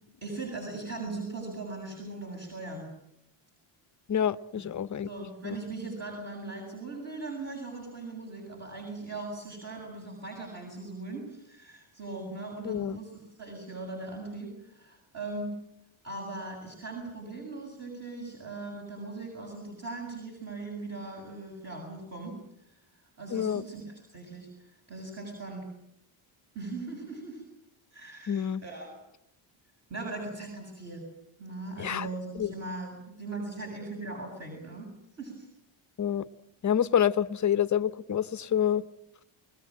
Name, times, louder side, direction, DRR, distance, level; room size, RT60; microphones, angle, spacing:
voice 1, 0.2-2.9 5.0-15.5 16.0-22.4 22.6-22.8 23.2-25.7 26.5-27.4 27.9-28.9 29.9-31.0 31.4-34.9 35.2-35.5, right 3 dB, 30° right, 7.8 m, -39 dB
voice 2, 4.1-5.1 5.4-5.6 12.6-13.0 23.3-23.6 28.3-28.6 31.8-32.1 32.4-32.5 36.0-36.3 36.6-38.8, left 9 dB, 35° left, 0.9 m, -27 dB
29.0 x 20.0 x 7.6 m
cardioid pair, 120°, 50 cm